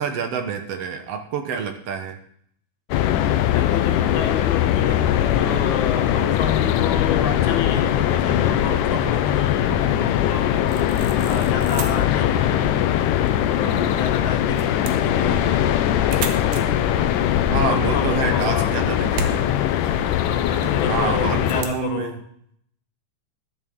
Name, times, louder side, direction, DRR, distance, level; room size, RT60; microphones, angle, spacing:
voice 1, 0.0-2.2 17.5-19.6 20.9-22.2, right 6 dB, 65° right, 6 dB, 1.8 m, -27 dB
sound 1, 2.9-21.6, left 11 dB, 85° left, 2.3 m, -21 dB
voice 2, 3.4-11.0 11.2-12.8 13.5-15.5 17.5-18.8 20.2-22.2, left 6 dB, 70° left, 4 dB, 2.8 m, -30 dB
sound 2, 10.7-21.8, right 7 dB, 85° right, 2.7 m, -38 dB
14.0 x 11.5 x 3.6 m, 0.67 s
omnidirectional pair, 3.6 m